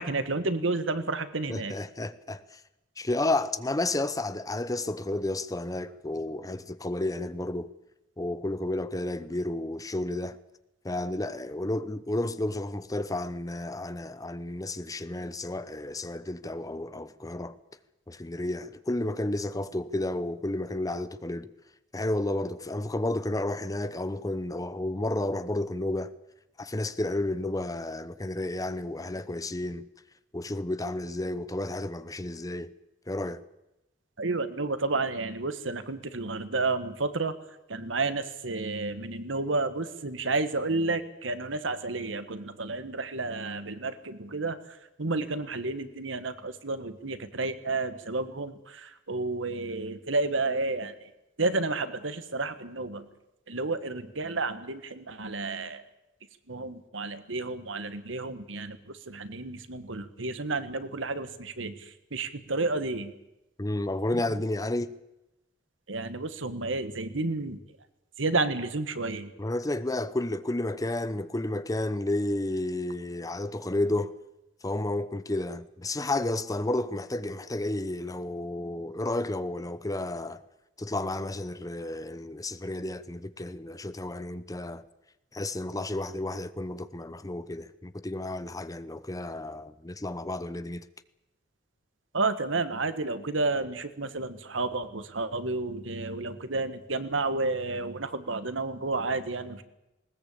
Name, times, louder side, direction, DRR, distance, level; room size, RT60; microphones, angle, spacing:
voice 1, 0.0-1.7 34.2-37.3 37.7-44.6 45.0-50.9 51.4-53.1 53.5-55.8 56.5-58.8 59.1-63.1 65.9-67.6 68.2-69.3 92.1-99.6, right 3 dB, 85° right, 1.6 m, -31 dB
voice 2, 1.5-2.6 3.0-7.7 8.2-10.4 10.8-17.6 18.1-21.5 21.9-26.1 26.6-29.9 30.3-32.7 33.1-33.4 63.6-65.0 69.4-74.1 74.6-80.4 80.8-84.8 85.3-90.9, left 1 dB, 20° left, 0.8 m, -31 dB
20.0 x 19.0 x 8.6 m
head